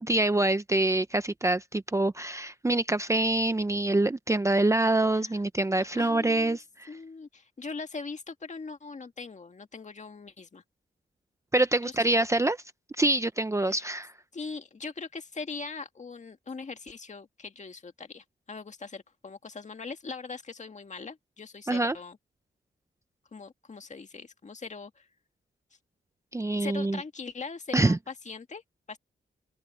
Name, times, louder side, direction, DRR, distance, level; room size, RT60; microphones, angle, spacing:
voice 1, 0.0-6.9 11.5-12.6 13.0-14.1 21.7-21.9 26.3-27.0 27.7-28.0, right 2 dB, 15° right, 0.7 m, -25 dB
voice 2, 5.8-6.6 6.9-10.6 11.8-12.1 13.6-13.9 14.3-22.2 23.3-25.1 26.6-28.6 28.9-29.0, left 4 dB, 40° left, 2.0 m, -41 dB
open air
cardioid pair, 100°, 19 cm